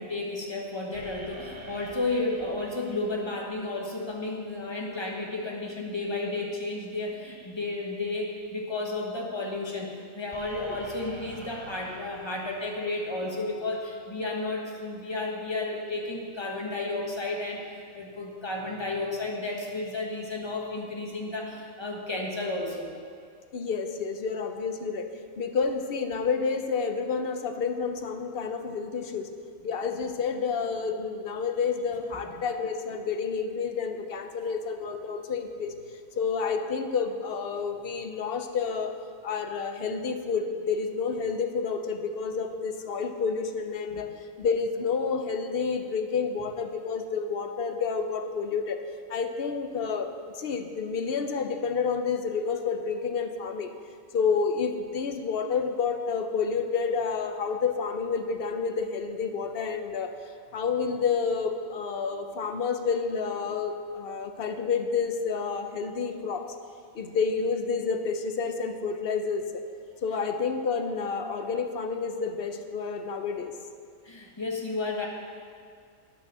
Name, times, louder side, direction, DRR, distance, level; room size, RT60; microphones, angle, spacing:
voice 1, 0.0-22.9 43.9-44.0 74.0-75.1, left 2 dB, 20° left, -1 dB, 1.2 m, -32 dB
sound 1, 0.9-4.6 10.3-14.0, right 1 dB, 30° right, 0.6 m, -48 dB
voice 2, 23.5-25.1 25.4-29.3 29.6-35.7 36.2-39.0 39.2-48.8 49.1-50.1 50.3-53.7 54.1-60.1 60.5-66.4 66.9-69.6 70.0-73.5, left 5 dB, 55° left, 7 dB, 0.7 m, -29 dB
10.0 x 6.1 x 6.5 m, 2.2 s
omnidirectional pair, 1.5 m